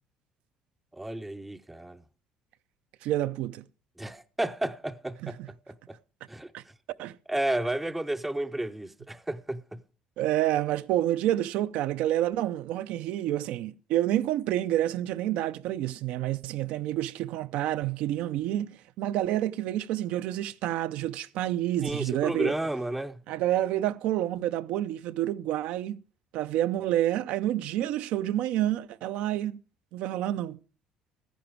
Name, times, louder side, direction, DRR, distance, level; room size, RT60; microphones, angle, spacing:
voice 1, 0.9-2.0 4.0-6.0 6.3-6.5 7.3-9.8 21.8-23.2, right 1 dB, 5° right, 0.5 m, -32 dB
voice 2, 3.0-3.6 5.2-5.5 6.5-6.6 7.0-7.2 10.2-22.5 23.3-26.0 26.3-29.6 29.9-30.6, right 13 dB, 75° right, 0.5 m, -28 dB
13.5 x 10.0 x 4.6 m
cardioid pair, 135°, 2 cm